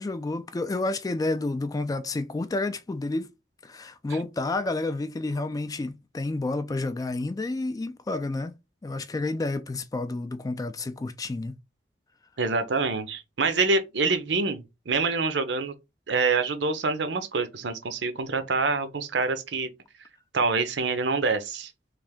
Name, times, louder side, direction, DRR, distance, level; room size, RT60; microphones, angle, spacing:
voice 1, 0.0-3.3 3.6-11.6, left 2 dB, 20° left, 0.3 m, -30 dB
voice 2, 12.4-15.7 16.1-19.7 20.3-21.7, right 4 dB, 75° right, 0.7 m, -26 dB
3.2 x 2.5 x 3.6 m
head